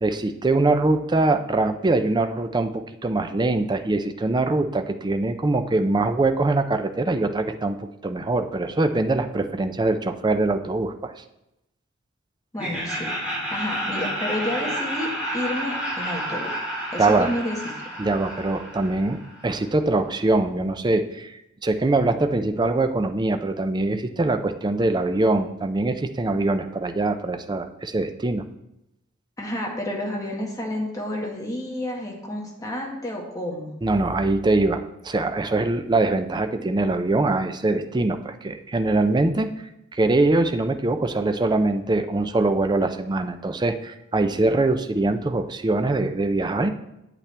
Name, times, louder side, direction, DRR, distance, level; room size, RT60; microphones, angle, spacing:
voice 1, 0.0-11.1 17.0-17.3 18.0-19.2 19.4-28.4 33.8-39.5 39.9-46.7, right 2 dB, 20° right, 8 dB, 0.5 m, -23 dB
voice 2, 12.5-13.1 13.5-16.5 16.9-17.6 29.4-33.7, left 1 dB, 15° left, -1 dB, 1.7 m, -30 dB
Laughter, 12.6-19.5, equal, 5° right, 2.4 m, -30 dB
8.7 x 8.4 x 3.4 m, 0.87 s
head